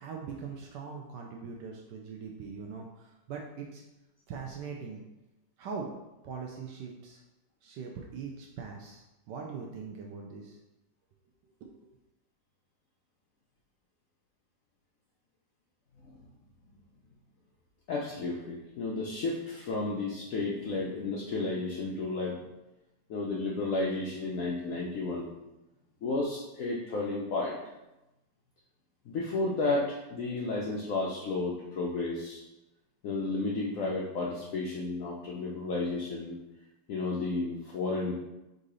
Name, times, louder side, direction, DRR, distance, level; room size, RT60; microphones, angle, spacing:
voice 1, 0.0-3.8 4.3-5.0 5.6-5.9 6.2-7.2 7.6-10.6 11.6-11.7, right 5 dB, 80° right, 1 dB, 1.2 m, -41 dB
voice 2, 17.9-22.4 23.1-25.3 26.0-27.6 29.1-32.4 33.0-36.4 36.9-38.1, left 3 dB, 65° left, -3 dB, 0.8 m, -32 dB
3.8 x 2.7 x 4.8 m, 0.97 s
omnidirectional pair, 1.9 m